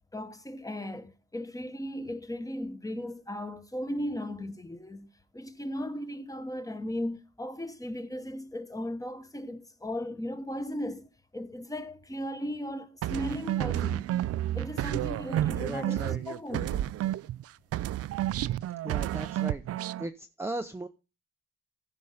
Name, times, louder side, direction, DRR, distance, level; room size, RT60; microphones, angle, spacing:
voice 1, 0.1-14.1 14.5-16.9, left 1 dB, 10° left, 1.2 m, -37 dB
sound 1, 13.0-17.4 17.7-20.1, right 13 dB, 55° right, 0.4 m, -31 dB
voice 2, 15.6-16.2 18.8-19.6 20.0-20.9, right 2 dB, 10° right, 0.7 m, -37 dB
14.5 x 5.4 x 4.9 m
cardioid pair, 90°, 30 cm